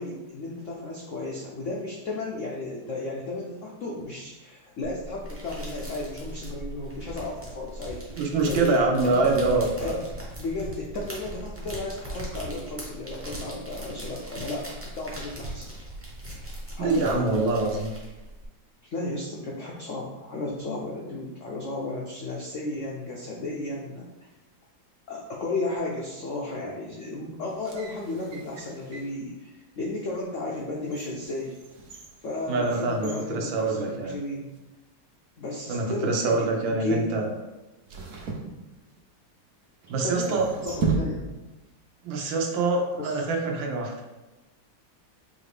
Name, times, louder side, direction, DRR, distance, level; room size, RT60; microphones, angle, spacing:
voice 1, 0.0-10.0 10.4-15.7 16.8-17.5 18.9-24.1 25.1-31.5 32.2-34.5 35.4-37.1 40.0-41.3 42.9-43.2, left 2 dB, 80° left, -2 dB, 0.6 m, -34 dB
sound 1, 4.8-18.4, right 1 dB, 15° right, 0.4 m, -39 dB
voice 2, 8.2-10.0 16.8-17.9 32.5-34.2 35.7-37.3 39.9-40.5 42.0-43.9, right 3 dB, 85° right, 1 dB, 1.5 m, -25 dB
sound 2, 27.4-29.2 29.8-29.9 30.5-34.3 34.6-34.7 35.5-35.9 37.9-39.2 40.0-41.6 41.8-41.9, right 4 dB, 65° right, 0.9 m, -35 dB
4.9 x 2.6 x 3.3 m, 1.1 s
omnidirectional pair, 2.0 m